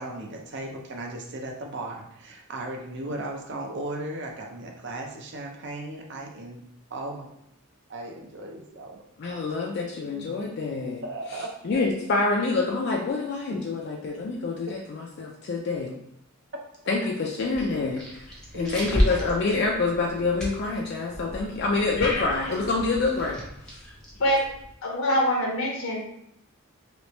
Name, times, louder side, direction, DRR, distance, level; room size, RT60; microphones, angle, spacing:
voice 1, 0.0-6.6 6.9-7.3 7.9-9.0 10.0-10.3 11.0-11.5 18.5-18.9, right 1 dB, 50° right, 1 dB, 0.6 m, -36 dB
voice 2, 9.2-11.0 11.3-15.9 16.9-23.4 23.7-23.9, left 3 dB, 50° left, -1 dB, 0.4 m, -27 dB
sound 1, 17.4-24.7, equal, 5° left, 0.7 m, -33 dB
voice 3, 24.8-26.0, equal, 70° left, -1 dB, 0.8 m, -24 dB
3.1 x 3.0 x 3.0 m, 0.75 s
head